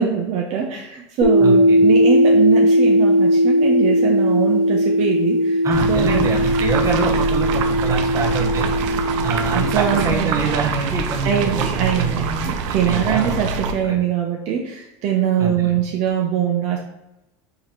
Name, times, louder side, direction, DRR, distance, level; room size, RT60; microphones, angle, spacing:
voice 1, 0.0-5.6 5.9-6.3 8.9-9.2 9.5-10.4 11.2-16.8, right 8 dB, 45° right, -1 dB, 0.7 m, -22 dB
sound 1, 1.2-10.0, equal, 80° left, 1.1 m, -17 dB
voice 2, 1.4-1.8 5.6-8.7 9.2-12.1 12.7-13.3 13.6-14.0 15.4-15.8, right 4 dB, 20° right, -2 dB, 1.0 m, -25 dB
sound 2, 5.7-13.7, right 5 dB, 80° right, 0.6 m, -25 dB
3.9 x 2.9 x 4.2 m, 0.89 s
supercardioid pair, 140°, 16 cm